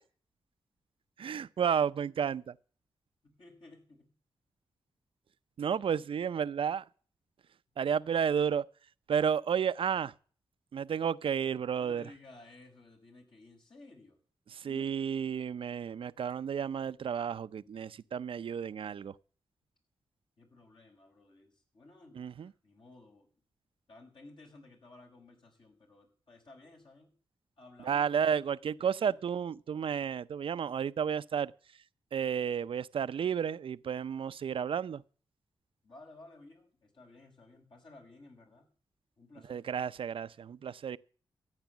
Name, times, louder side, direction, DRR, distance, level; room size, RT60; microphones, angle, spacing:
voice 1, 1.2-2.5 5.6-6.8 7.8-8.6 9.1-10.1 10.7-12.1 14.5-19.1 22.2-22.5 27.8-31.5 32.1-35.0 39.5-41.0, right 7 dB, 70° right, 0.6 m, -32 dB
voice 2, 3.2-4.1 11.8-14.2 14.6-15.1 20.4-22.2 22.6-23.3 23.9-27.1 27.6-28.2 28.8-29.2 35.8-38.7 39.2-39.7, left 2 dB, 60° left, 6.0 m, -55 dB
14.0 x 9.0 x 7.3 m
cardioid pair, 50°, 9 cm